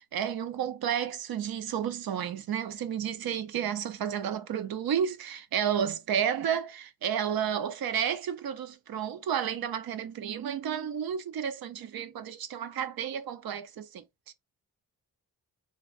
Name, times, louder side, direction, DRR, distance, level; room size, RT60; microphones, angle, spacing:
voice 1, 0.0-14.3, right 8 dB, 80° right, 0.6 m, -31 dB
3.3 x 2.3 x 2.4 m
wide cardioid pair, 105°, 35 cm